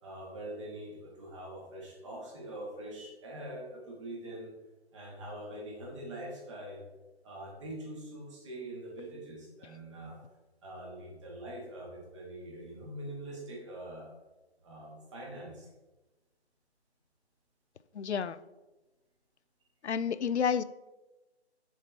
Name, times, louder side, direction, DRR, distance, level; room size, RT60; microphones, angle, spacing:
voice 1, 0.0-4.5 4.9-6.8 7.2-10.2 10.6-14.1 14.6-15.7, right 1 dB, 25° right, -2 dB, 1.6 m, -43 dB
voice 2, 17.9-18.4 19.8-20.6, left 7 dB, 80° left, 16 dB, 0.5 m, -30 dB
6.9 x 4.5 x 4.3 m, 1.1 s
figure-of-eight pair, 145°, 33 cm